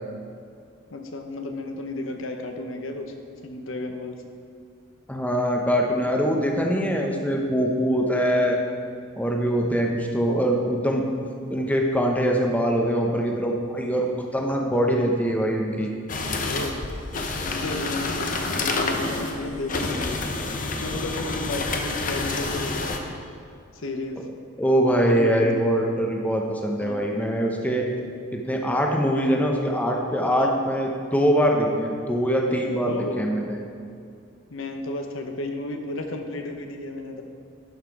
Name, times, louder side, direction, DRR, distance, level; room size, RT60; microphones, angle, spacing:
voice 1, 0.9-3.1 3.4-4.2 15.8-15.9 16.4-16.8 17.4-20.2 20.8-23.1 23.7-24.2 25.0-25.7 26.8-27.0 30.4-30.7 32.8-33.2 34.5-37.2, left 2 dB, 70° left, 4 dB, 0.9 m, -33 dB
voice 2, 5.1-8.6 9.2-11.0 11.5-15.9 24.6-27.8 28.3-33.6, equal, 5° left, 0 dB, 0.7 m, -23 dB
sound 1, 16.1-23.0, left 3 dB, 40° left, 0.8 m, -28 dB
12.0 x 5.7 x 4.7 m, 2.3 s
head